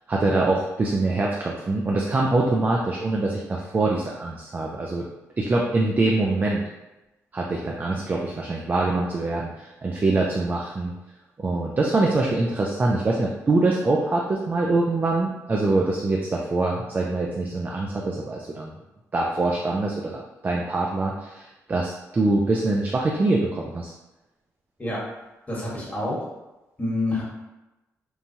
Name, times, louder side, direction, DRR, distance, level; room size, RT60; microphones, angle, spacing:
voice 1, 0.1-5.1 5.4-6.6 7.3-10.9 11.4-18.7 19.1-23.9, right 2 dB, 35° right, -2 dB, 0.4 m, -24 dB
voice 2, 25.5-26.2 26.8-27.2, left 2 dB, 25° left, -5 dB, 1.2 m, -27 dB
3.1 x 2.2 x 2.7 m, 1.0 s
cardioid pair, 70°, 6 cm